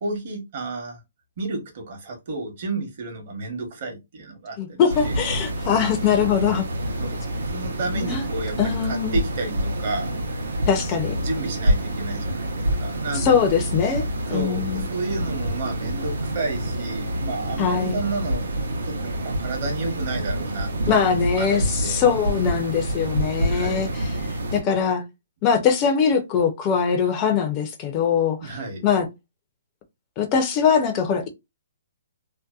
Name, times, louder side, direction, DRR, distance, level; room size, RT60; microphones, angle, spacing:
voice 1, 0.0-1.0 1.4-5.2 7.0-10.4 11.1-13.4 14.3-18.5 18.8-22.0 23.5-23.9 28.4-28.9, right 3 dB, 50° right, 0.9 m, -32 dB
voice 2, 4.6-6.7 8.0-8.2 8.6-9.2 10.7-11.2 13.1-14.9 17.6-18.0 20.9-24.2 24.5-25.0 25.4-28.5 28.8-29.1 30.2-31.3, left 7 dB, 25° left, 0.4 m, -22 dB
sound 1, 4.9-24.6, right 1 dB, 90° right, 0.7 m, -27 dB
2.6 x 2.1 x 2.3 m
hypercardioid pair, 160°, 0 cm